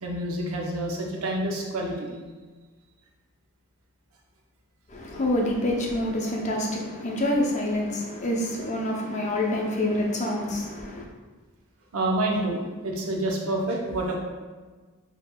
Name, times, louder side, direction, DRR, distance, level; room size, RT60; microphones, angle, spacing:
voice 1, 0.0-2.1 11.9-14.2, right 1 dB, 75° right, -1 dB, 0.7 m, -28 dB
voice 2, 4.9-11.1, left 1 dB, 30° left, -1 dB, 0.5 m, -27 dB
5.1 x 2.8 x 2.2 m, 1.4 s
head